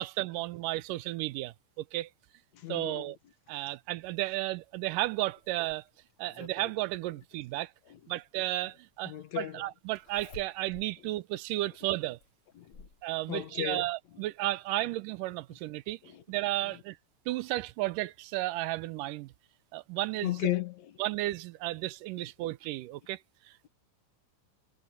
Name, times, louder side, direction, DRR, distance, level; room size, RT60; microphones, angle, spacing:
voice 1, 0.0-2.1 2.7-3.2 3.5-5.8 6.2-7.7 8.1-12.2 13.0-16.0 16.3-17.0 17.3-19.3 19.7-20.3 21.0-23.2, right 17 dB, 85° right, 2.3 m, -33 dB
voice 2, 2.5-3.1 7.9-8.0 9.1-9.6 11.8-11.9 12.6-12.9 13.3-13.9 16.0-16.2 16.6-16.8 20.2-20.9, left 14 dB, 65° left, 2.2 m, -35 dB
Zipper (clothing), 5.0-6.8 8.2-8.3 9.9-10.9 11.4-11.5 12.2-13.0 14.2-14.3 14.7-14.8, left 2 dB, 40° left, 4.0 m, -51 dB
omnidirectional pair, 3.7 m